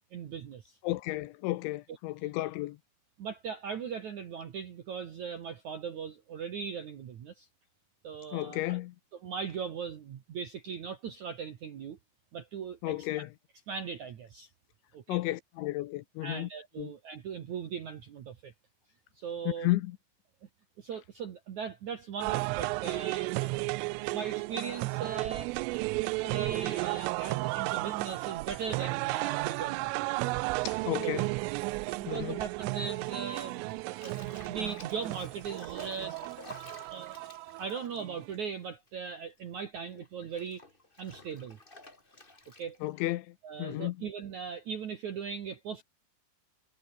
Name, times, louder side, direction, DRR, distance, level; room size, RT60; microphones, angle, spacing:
voice 1, 0.1-0.8 3.2-7.5 8.0-8.8 9.2-12.0 12.3-13.3 13.7-14.5 14.9-15.2 16.2-18.5 19.2-19.7 20.4-20.5 20.8-23.5 24.1-30.1 31.0-31.1 31.8-36.1 36.9-37.2 37.6-40.6 41.0-41.6 42.6-42.8 43.4-45.8, right 6 dB, 65° right, 1.9 m, -39 dB
voice 2, 0.8-2.8 8.3-9.0 12.8-13.3 15.1-16.5 16.8-16.9 19.6-20.0 30.6-31.3 32.1-32.4 42.8-44.1, left 18 dB, 85° left, 2.9 m, -33 dB
sound 1, 22.2-38.3, right 24 dB, 85° right, 3.1 m, -34 dB
Bathtub (filling or washing), 33.2-39.1 39.3-42.9, left 2 dB, 15° left, 1.8 m, -52 dB
omnidirectional pair, 5.8 m